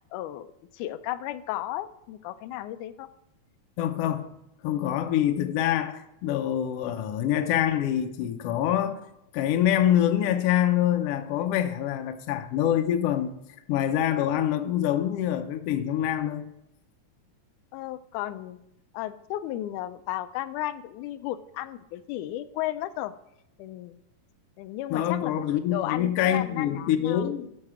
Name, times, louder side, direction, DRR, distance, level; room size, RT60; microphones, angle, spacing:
voice 1, 0.1-0.5 0.7-3.1 17.7-18.6 18.9-23.1 23.6-24.0 24.6-27.3, left 14 dB, 90° left, 2.0 m, -34 dB
voice 2, 3.8-4.3 4.6-9.0 9.3-13.3 13.7-16.4 24.9-27.5, left 11 dB, 75° left, 1.4 m, -25 dB
13.0 x 4.9 x 4.8 m
omnidirectional pair, 3.5 m